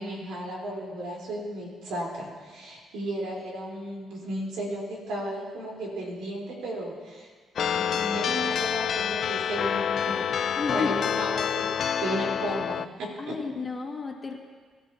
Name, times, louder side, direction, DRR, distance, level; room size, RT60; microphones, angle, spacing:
voice 1, 0.0-7.3 7.7-10.3 10.7-13.4, right 1 dB, 85° right, -3 dB, 4.2 m, -34 dB
sound 1, 7.6-12.9, left 8 dB, 60° left, 0.4 m, -27 dB
voice 2, 10.6-11.0 13.2-14.4, left 4 dB, 30° left, 1 dB, 2.1 m, -32 dB
23.0 x 13.0 x 2.9 m, 1.5 s
cardioid pair, 90°, 0 cm